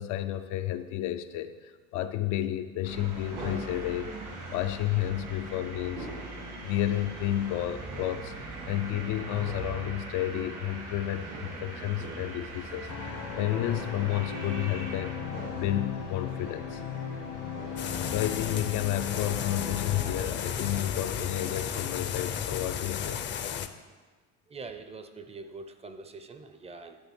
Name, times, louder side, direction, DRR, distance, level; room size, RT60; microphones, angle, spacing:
voice 1, 0.0-4.2 4.5-6.1 6.6-8.3 8.7-15.1 15.5-16.8 18.0-23.2, left 13 dB, 90° left, 9 dB, 0.6 m, -31 dB
sound 1, 2.8-21.7, right 2 dB, 85° right, 2.5 m, -42 dB
sound 2, 12.9-20.3, left 7 dB, 70° left, 1.1 m, -37 dB
sound 3, 17.8-23.7, left 8 dB, 40° left, 0.5 m, -34 dB
voice 2, 24.5-27.0, right 3 dB, 20° right, 8 dB, 0.4 m, -43 dB
9.9 x 3.5 x 7.1 m, 1.4 s
cardioid pair, 135°, 29 cm